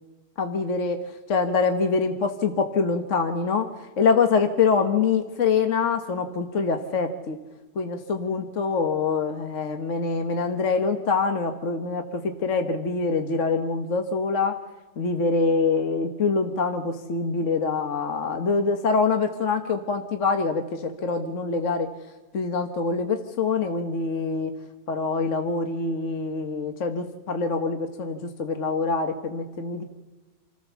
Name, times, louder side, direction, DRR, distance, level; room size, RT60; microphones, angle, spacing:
voice 1, 0.4-1.0 1.3-3.7 4.0-7.4 7.7-14.5 15.0-21.9 22.3-24.5 24.9-29.8, left 4 dB, 45° left, 6 dB, 1.4 m, -25 dB
27.5 x 14.5 x 7.0 m, 1.2 s
omnidirectional pair, 1.9 m